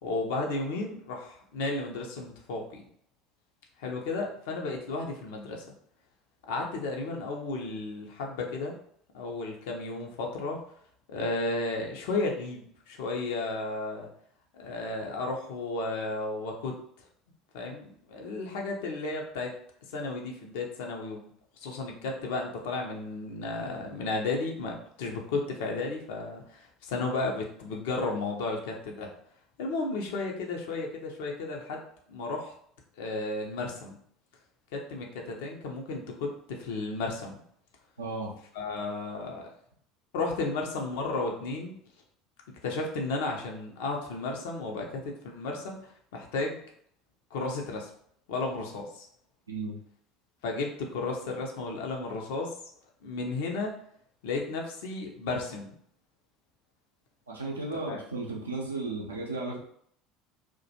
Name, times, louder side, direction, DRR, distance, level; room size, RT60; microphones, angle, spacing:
voice 1, 0.0-2.8 3.8-5.7 6.5-8.8 9.1-10.6 11.1-14.1 14.5-16.8 17.5-19.5 19.9-21.3 21.6-29.1 29.6-32.5 33.0-34.0 34.7-37.4 38.5-39.5 40.1-41.7 42.6-46.6 47.3-47.9 48.3-49.1 50.4-52.5 53.0-53.8 54.2-55.7 57.9-58.0, left 3 dB, 65° left, 0 dB, 0.5 m, -33 dB
voice 2, 38.0-38.3 49.5-49.8 57.3-59.6, right 3 dB, 85° right, -2 dB, 0.5 m, -34 dB
2.3 x 2.2 x 2.7 m, 0.65 s
figure-of-eight pair, 65°, 0 cm